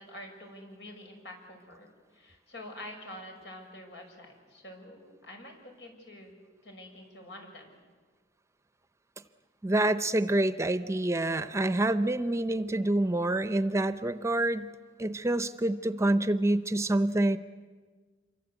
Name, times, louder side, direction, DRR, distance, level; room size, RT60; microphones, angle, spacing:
voice 1, 0.0-7.8, left 1 dB, 80° left, 3 dB, 6.3 m, -47 dB
voice 2, 9.6-14.7 15.0-17.4, right 1 dB, 15° right, 12 dB, 0.7 m, -27 dB
27.0 x 24.0 x 8.1 m, 1.5 s
head